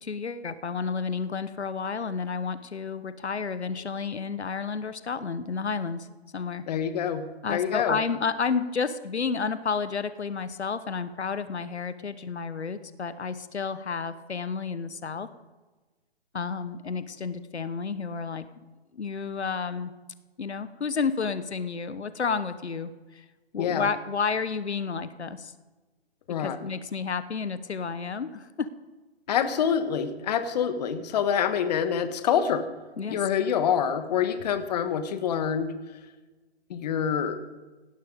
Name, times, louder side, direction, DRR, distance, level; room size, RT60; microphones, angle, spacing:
voice 1, 0.0-6.1 6.3-6.6 7.4-15.3 16.3-18.5 18.9-19.9 20.4-23.2 23.5-25.5 26.4-28.7 33.0-33.2, left 5 dB, 85° left, 13 dB, 1.2 m, -31 dB
voice 2, 6.7-8.0 23.6-23.9 26.3-26.6 29.3-32.6 33.1-35.7 36.7-37.4, left 8 dB, 40° left, 10 dB, 1.4 m, -26 dB
17.5 x 12.5 x 5.3 m, 1.2 s
hypercardioid pair, 145°, 33 cm